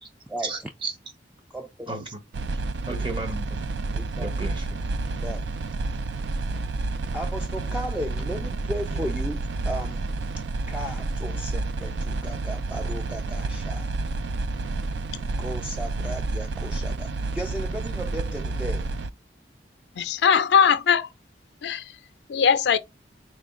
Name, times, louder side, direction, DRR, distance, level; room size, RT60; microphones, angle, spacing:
voice 1, 0.4-1.0 1.9-2.2 2.9-3.6 4.2-4.8, right 3 dB, 25° right, 0.8 m, -34 dB
voice 2, 1.5-1.9 3.9-4.3 5.0-5.5 7.1-10.1 10.7-13.9 15.1-18.9, equal, 5° right, 0.3 m, -35 dB
sound 1, 2.3-19.1, right 3 dB, 80° right, 0.4 m, -30 dB
voice 3, 20.0-21.1 21.6-21.8 22.3-22.8, left 7 dB, 75° left, 0.4 m, -20 dB
4.1 x 2.2 x 3.6 m
head